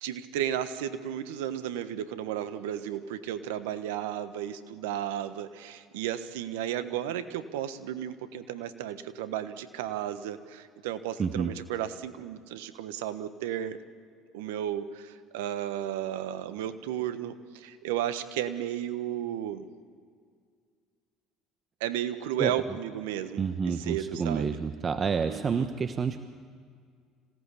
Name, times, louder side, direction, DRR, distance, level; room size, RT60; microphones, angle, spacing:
voice 1, 0.0-13.8 14.3-19.7 21.8-24.6 25.2-25.7, right 11 dB, 80° right, 11 dB, 1.3 m, -34 dB
voice 2, 11.2-11.5 22.4-22.5 23.4-26.2, right 6 dB, 35° right, 9 dB, 1.2 m, -29 dB
26.5 x 17.5 x 8.4 m, 2.1 s
hypercardioid pair, 70°, 0 cm